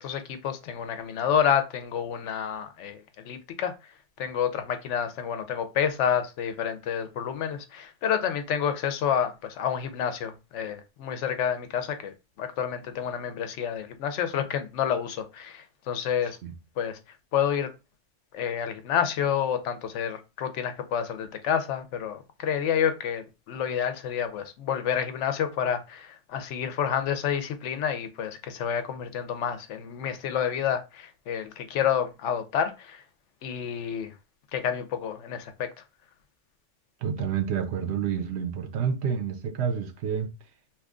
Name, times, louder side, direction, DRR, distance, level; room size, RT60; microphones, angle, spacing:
voice 1, 0.0-3.9 4.2-16.4 16.8-17.0 17.3-17.7 18.3-33.0 33.4-34.1 34.5-35.7, left 8 dB, 80° left, 0.9 m, -29 dB
voice 2, 37.0-40.3, right 7 dB, 70° right, 0.8 m, -29 dB
2.9 x 2.3 x 3.6 m
omnidirectional pair, 1.2 m